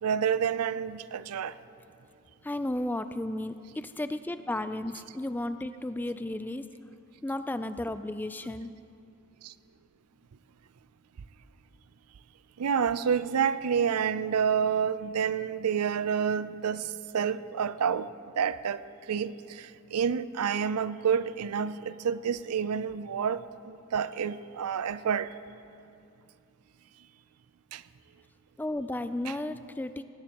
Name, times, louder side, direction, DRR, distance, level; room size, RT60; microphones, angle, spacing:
voice 1, 0.0-1.5 9.4-9.5 12.6-18.1 18.4-18.8 19.1-23.4 23.7-25.3 27.7-27.8 29.3-29.4, right 7 dB, 85° right, 0.5 m, -29 dB
voice 2, 2.4-6.7 7.2-8.7 28.6-30.0, left 1 dB, 10° left, 0.3 m, -33 dB
19.0 x 17.0 x 3.0 m
head